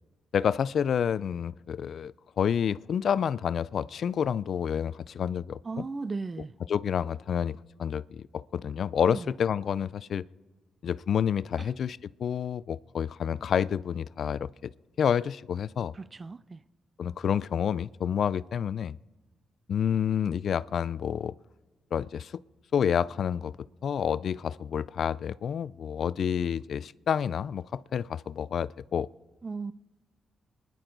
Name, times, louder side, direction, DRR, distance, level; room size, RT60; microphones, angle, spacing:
voice 1, 0.3-5.8 6.7-10.2 10.8-14.7 15.0-15.9 17.0-19.0 19.7-21.3 21.9-22.3 22.7-23.5 23.8-29.1, left 8 dB, 65° left, 0.4 m, -29 dB
voice 2, 5.6-6.5 9.1-9.3 11.6-11.7 15.9-16.6 29.4-29.7, right 4 dB, 35° right, 0.5 m, -36 dB
27.0 x 11.0 x 3.9 m
cardioid pair, 65°, 0 cm